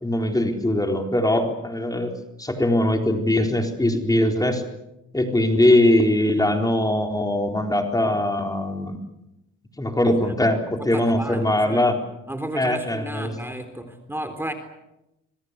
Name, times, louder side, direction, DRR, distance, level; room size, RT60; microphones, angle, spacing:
voice 1, 0.0-4.6 5.1-9.0 9.8-12.0 12.5-13.3, left 1 dB, 10° left, 4 dB, 4.1 m, -21 dB
voice 2, 10.9-11.8 12.3-14.5, right 1 dB, 5° right, 7 dB, 3.8 m, -33 dB
26.5 x 22.5 x 8.2 m, 0.89 s
cardioid pair, 90°, 30 cm